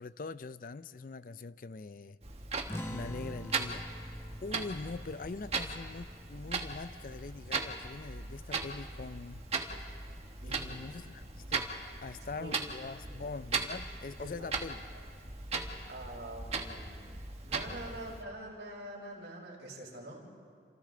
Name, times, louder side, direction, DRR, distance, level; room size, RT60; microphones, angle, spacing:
voice 1, 0.0-2.2 2.8-9.4 10.5-11.7 12.0-14.8 17.9-18.0, left 3 dB, 50° left, 15 dB, 0.5 m, -43 dB
Clock, 2.2-18.2, right 4 dB, 35° right, 1.5 m, -39 dB
sound 1, 2.7-7.7, equal, 15° left, 0.8 m, -46 dB
voice 2, 10.4-10.9 12.4-12.5 13.1-13.2 14.2-14.4 15.9-17.1 17.5-20.3, right 1 dB, 70° right, -4 dB, 6.1 m, -45 dB
28.5 x 27.5 x 3.8 m, 2.2 s
head